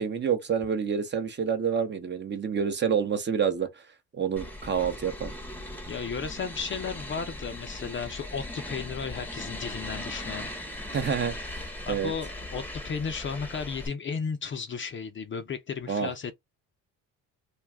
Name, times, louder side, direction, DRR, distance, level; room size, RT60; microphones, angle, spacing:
voice 1, 0.0-3.7 4.1-5.3 10.9-12.1 15.9-16.1, right 7 dB, 30° right, 0.7 m, -28 dB
sound 1, 4.4-13.9, left 1 dB, 5° left, 0.8 m, -39 dB
voice 2, 5.9-10.5 10.9-11.1 11.9-16.3, left 6 dB, 30° left, 0.6 m, -34 dB
2.3 x 2.3 x 3.4 m
supercardioid pair, 80°, 37 cm